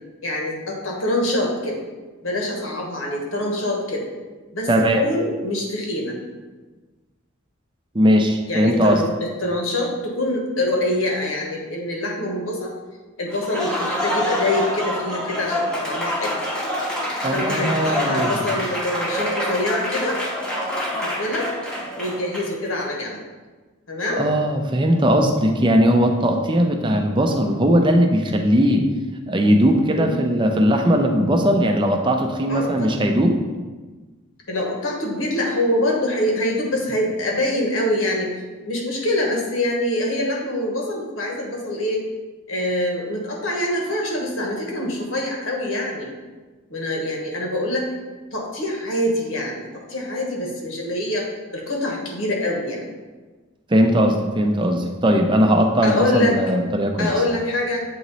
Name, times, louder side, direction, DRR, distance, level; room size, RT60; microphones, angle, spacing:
voice 1, 0.2-1.8 2.2-4.1 4.5-6.2 8.5-12.7 13.2-16.4 17.3-20.2 21.0-21.5 22.0-23.2 23.9-24.3 29.9-30.2 32.5-33.1 34.5-38.3 38.7-42.0 42.5-46.1 46.7-47.8 48.3-51.2 51.5-52.8 55.8-56.4 57.0-57.8, left 1 dB, 75° left, -1 dB, 1.3 m, -25 dB
voice 2, 4.7-5.1 7.9-9.0 17.2-18.4 24.2-28.9 29.3-33.4 53.7-57.1, equal, 25° right, 3 dB, 0.5 m, -19 dB
Applause, 13.3-22.7, left 1 dB, 5° left, 0.8 m, -26 dB
7.8 x 3.0 x 4.1 m, 1.3 s
head